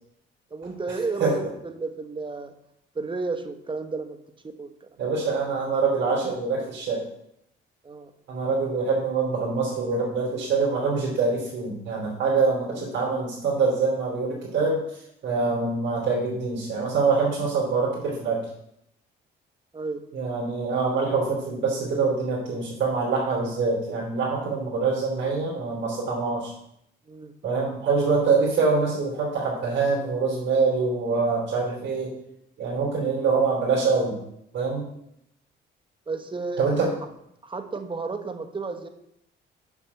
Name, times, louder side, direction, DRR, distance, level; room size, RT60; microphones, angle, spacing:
voice 1, 0.5-2.5 2.9-4.2 4.6-4.9 7.8-8.1 19.7-20.0 27.1-27.3 36.1-36.9 37.4-38.9, right 3 dB, 25° right, 7 dB, 1.2 m, -32 dB
voice 2, 5.0-7.0 8.3-18.4 20.1-26.5 27.4-32.1 32.6-34.2 34.5-34.9 36.6-36.9, right 4 dB, 65° right, -5 dB, 3.4 m, -25 dB
7.3 x 6.1 x 7.1 m, 0.77 s
cardioid pair, 90°, 20 cm